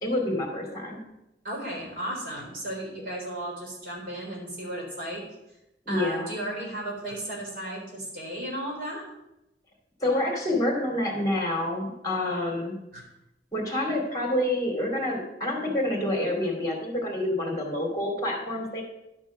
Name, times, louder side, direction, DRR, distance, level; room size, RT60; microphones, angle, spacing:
voice 1, 0.0-1.0 5.9-6.3 10.0-12.7 13.5-18.8, left 1 dB, 20° left, 0 dB, 2.6 m, -28 dB
voice 2, 1.4-5.3 5.9-9.0 12.9-13.0, right 1 dB, 55° right, -3 dB, 3.7 m, -34 dB
11.0 x 4.5 x 6.3 m, 0.89 s
head